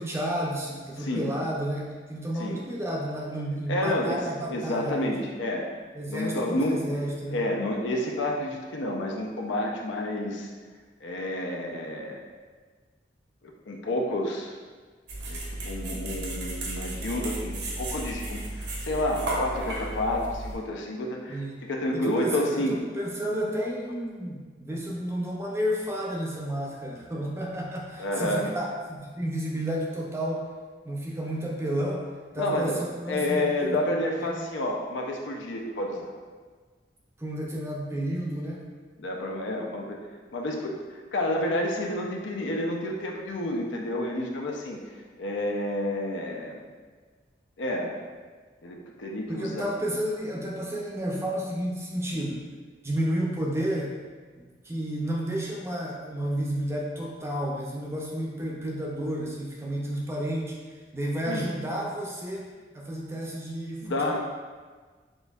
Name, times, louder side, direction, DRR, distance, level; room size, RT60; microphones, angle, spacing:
voice 1, 0.0-5.2 5.9-7.4 21.3-21.6 21.9-30.4 30.9-32.0 32.3-33.8 34.2-34.4 37.2-38.6 49.3-52.4 52.8-54.0 54.3-60.6 60.9-62.5 62.7-64.2, equal, 15° right, -2 dB, 0.5 m, -31 dB
voice 2, 3.7-4.2 4.5-5.7 6.1-6.9 7.3-10.5 11.0-12.2 13.7-14.5 15.3-22.8 28.0-28.6 32.4-36.1 39.0-40.0 40.3-44.8 45.2-46.7 47.6-48.0 48.6-49.6 61.3-61.5 63.8-64.2, left 1 dB, 85° left, 0 dB, 0.6 m, -30 dB
sound 1, 15.1-20.6, right 1 dB, 75° right, 0.8 m, -34 dB
6.1 x 2.6 x 2.3 m, 1.5 s
head